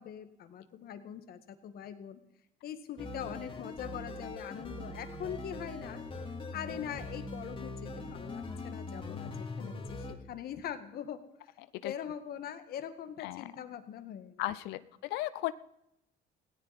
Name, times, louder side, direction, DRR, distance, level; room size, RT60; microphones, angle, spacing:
voice 1, 0.0-2.2 2.6-6.0 6.5-11.2 11.8-14.8, left 9 dB, 65° left, 9 dB, 1.8 m, -42 dB
sound 1, 3.0-10.2, left 2 dB, 30° left, 2.9 m, -42 dB
voice 2, 14.4-15.5, left 16 dB, 90° left, 15 dB, 0.6 m, -35 dB
18.5 x 17.0 x 4.3 m, 0.81 s
cardioid pair, 110°, 17 cm